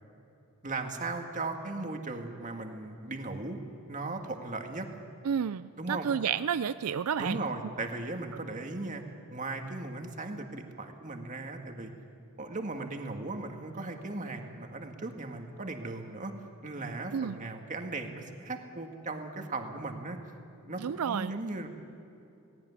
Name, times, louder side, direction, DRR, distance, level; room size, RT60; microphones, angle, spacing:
voice 1, 0.6-3.6 3.9-4.9 5.8-6.1 7.2-9.0 9.3-11.9 12.4-16.3 16.6-20.2 20.6-21.7, right 2 dB, 35° right, 4 dB, 1.9 m, -37 dB
voice 2, 5.2-7.4 17.1-17.4 20.8-21.3, right 7 dB, 85° right, 13 dB, 0.4 m, -31 dB
18.5 x 17.0 x 9.5 m, 2.8 s
head